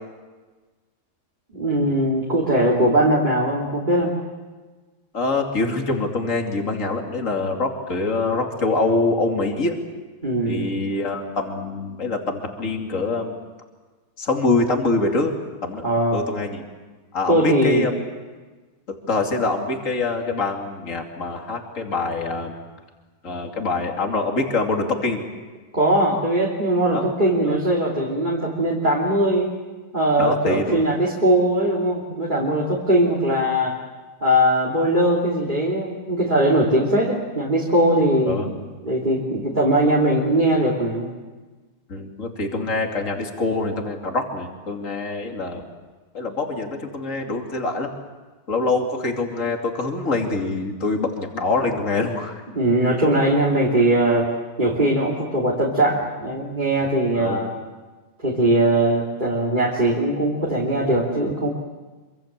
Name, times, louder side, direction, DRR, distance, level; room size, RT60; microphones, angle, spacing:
voice 1, 1.5-4.1 10.2-10.7 15.8-16.2 17.3-17.9 25.7-29.5 29.9-33.8 34.2-38.6 38.8-41.1 52.5-54.3 54.6-57.5 58.2-61.5, right 1 dB, 20° right, -3 dB, 3.2 m, -20 dB
voice 2, 5.1-9.8 10.5-13.3 14.2-15.3 15.6-15.9 16.1-16.6 17.1-17.9 18.9-22.6 23.2-25.2 26.9-27.1 27.4-27.6 30.2-30.8 38.3-38.5 41.9-45.7 46.1-47.9 48.5-52.4 57.1-57.4, left 3 dB, 40° left, 2 dB, 3.0 m, -24 dB
26.5 x 25.0 x 7.5 m, 1.3 s
omnidirectional pair, 2.2 m